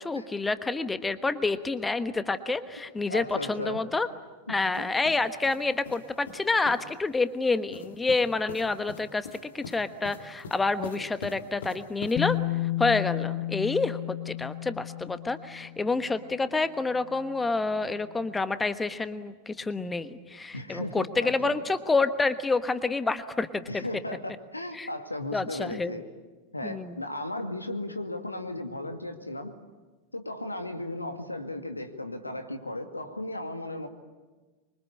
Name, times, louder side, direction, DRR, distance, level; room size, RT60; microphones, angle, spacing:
voice 1, 0.0-4.1 4.5-23.8 24.7-24.9 25.3-25.9 26.6-27.0, left 3 dB, 10° left, 12 dB, 1.2 m, -28 dB
voice 2, 3.1-3.8 4.5-4.9 20.5-21.6 23.7-26.0 26.5-29.5 30.1-33.9, left 1 dB, 85° left, 6 dB, 2.2 m, -36 dB
sound 1, 4.7-6.9 7.7-12.4, left 5 dB, 65° left, 2.3 m, -44 dB
Bass guitar, 12.2-16.1 17.2-17.3, left 17 dB, 40° left, 0.9 m, -32 dB
26.0 x 24.0 x 8.6 m, 1.3 s
figure-of-eight pair, 90°, 0 cm